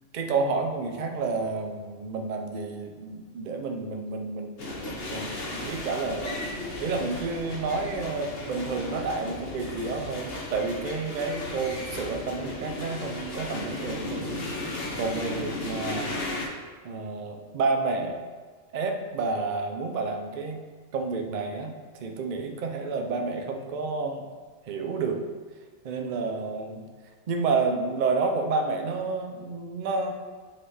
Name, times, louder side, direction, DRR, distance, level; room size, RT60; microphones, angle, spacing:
voice 1, 0.1-14.4 15.0-16.2 16.8-18.2 18.7-20.6 20.9-24.2 24.7-25.2 25.8-26.9 27.3-30.1, right 4 dB, 50° right, 4 dB, 0.6 m, -30 dB
sound 1, 4.6-16.5, left 2 dB, 50° left, 1.2 m, -35 dB
7.5 x 4.3 x 3.3 m, 1.4 s
omnidirectional pair, 1.3 m